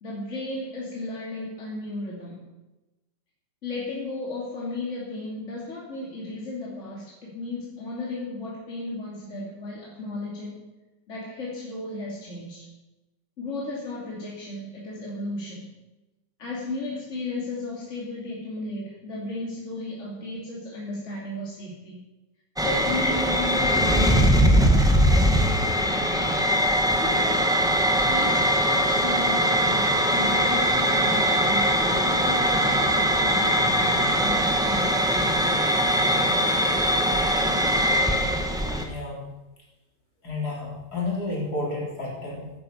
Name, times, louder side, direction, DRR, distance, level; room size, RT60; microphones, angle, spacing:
voice 1, 0.0-2.5 3.6-10.6 11.1-12.7 13.4-15.7 16.4-22.0 22.6-26.0 27.0-27.6 28.1-35.7, left 2 dB, 45° left, -5 dB, 3.0 m, -35 dB
sound 1, 22.6-38.8, equal, 5° right, 1.1 m, -21 dB
voice 2, 38.8-39.4 40.2-42.5, left 2 dB, 65° left, -3 dB, 4.3 m, -31 dB
10.5 x 9.8 x 7.2 m, 1.0 s
omnidirectional pair, 1.8 m